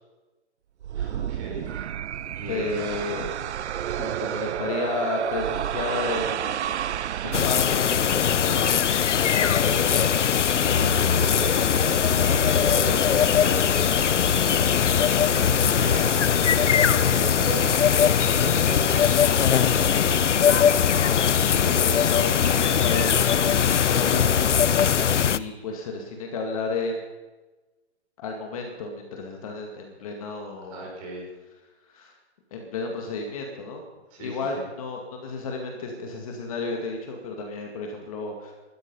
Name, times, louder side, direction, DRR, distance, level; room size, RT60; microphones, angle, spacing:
sound 1, 0.8-8.0, right 10 dB, 70° right, 0.5 m, -30 dB
voice 1, 0.9-1.7 2.1-3.2 10.5-14.8 15.1-16.1 16.5-20.4 30.6-31.3 34.1-34.6, right 3 dB, 30° right, -1 dB, 5.3 m, -37 dB
voice 2, 2.5-3.3 3.9-6.8 7.2-8.9 9.2-10.1 21.6-27.0 28.2-30.9 31.9-32.2 32.5-33.8 34.2-38.5, left 3 dB, 30° left, 2 dB, 2.1 m, -32 dB
sound 2, 7.3-25.4, left 8 dB, 90° left, 0.8 m, -21 dB
sound 3, 15.6-22.6, right 2 dB, 10° right, 3.1 m, -49 dB
20.0 x 13.0 x 5.5 m, 1.2 s
hypercardioid pair, 165°, 35 cm